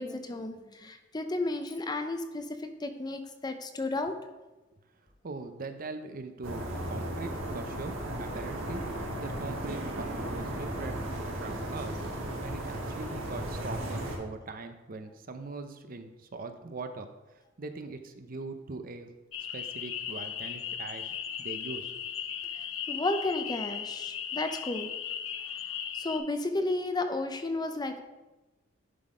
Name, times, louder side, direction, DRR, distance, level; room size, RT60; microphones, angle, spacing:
voice 1, 0.0-4.1 22.5-24.9 25.9-28.0, left 2 dB, 20° left, 7 dB, 0.6 m, -33 dB
voice 2, 5.2-12.0 12.4-17.1 17.6-19.1 19.5-22.1, right 3 dB, 45° right, 8 dB, 0.6 m, -41 dB
sound 1, 6.4-14.2, right 1 dB, 80° right, 1.6 m, -35 dB
sound 2, 19.3-26.2, left 8 dB, 70° left, 0.7 m, -37 dB
11.0 x 3.9 x 4.9 m, 1.1 s
head